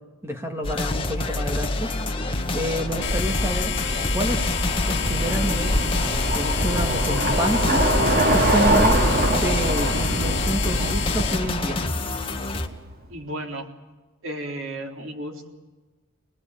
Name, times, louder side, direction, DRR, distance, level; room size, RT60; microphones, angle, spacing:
voice 1, 0.2-3.7 4.1-4.6 4.9-5.8 6.3-9.1 9.4-11.8, equal, 10° right, 3 dB, 1.9 m, -29 dB
sound 1, 0.6-12.7, left 2 dB, 25° left, 1.7 m, -27 dB
Bicycle, 1.9-12.8, right 1 dB, 45° right, 2.6 m, -26 dB
sound 2, 3.0-11.4, left 4 dB, 55° left, 2.3 m, -27 dB
voice 2, 13.1-13.7 14.2-15.5, right 1 dB, 65° right, 2 dB, 3.7 m, -33 dB
26.0 x 19.5 x 9.1 m, 1.3 s
head